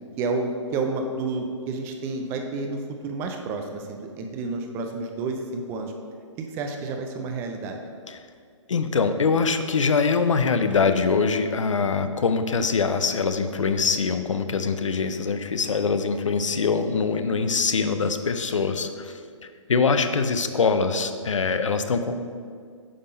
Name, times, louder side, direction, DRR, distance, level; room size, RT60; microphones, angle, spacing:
voice 1, 0.2-5.9 6.5-7.8, right 3 dB, 15° right, 4 dB, 0.4 m, -30 dB
voice 2, 8.7-19.2 19.7-22.1, left 5 dB, 70° left, 9 dB, 0.6 m, -23 dB
8.6 x 3.6 x 5.2 m, 2.1 s
figure-of-eight pair, 130°, 16 cm